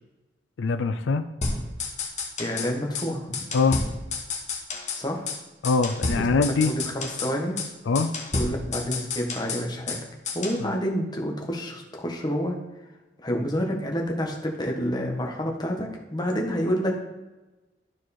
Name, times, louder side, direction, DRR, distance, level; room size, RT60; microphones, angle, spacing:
voice 1, 0.6-1.2 3.5-3.8 5.6-6.7 7.9-8.1, left 4 dB, 90° left, 10 dB, 0.4 m, -22 dB
sound 1, 1.4-2.7 3.0-3.1 3.3-5.0 5.3-5.4 5.6-7.3 7.6-7.7 8.0-10.0 10.3-10.6, left 3 dB, 40° left, 1.3 m, -30 dB
voice 2, 2.4-3.4 4.9-5.3 6.2-6.3 6.6-7.5 8.3-10.0 10.3-12.6 13.2-16.9, equal, 25° left, 1 dB, 1.4 m, -28 dB
12.0 x 4.7 x 4.3 m, 1.1 s
head